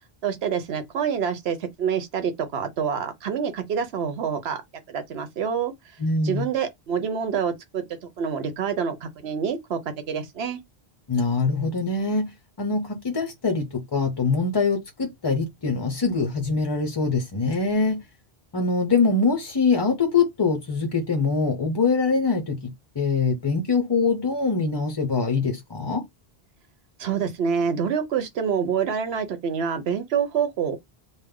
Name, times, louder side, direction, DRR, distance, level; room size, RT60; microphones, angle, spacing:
voice 1, 0.2-4.6 4.9-5.7 6.2-7.8 8.2-9.8 10.1-10.6 27.0-30.8, right 7 dB, 85° right, 1.0 m, -26 dB
voice 2, 6.0-6.5 11.1-12.3 12.6-18.0 18.5-26.0, left 4 dB, 35° left, 0.4 m, -23 dB
3.3 x 2.1 x 3.6 m
omnidirectional pair, 1.0 m